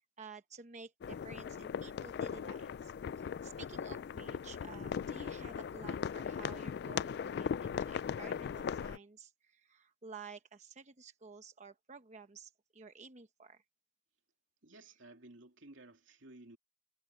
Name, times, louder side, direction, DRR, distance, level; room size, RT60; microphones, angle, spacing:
voice 1, 0.0-13.6, right 4 dB, 40° right, 1.0 m, -52 dB
sound 1, 1.0-9.0, left 7 dB, 60° left, 0.3 m, -39 dB
voice 2, 14.6-16.6, right 2 dB, 85° right, 2.8 m, -55 dB
head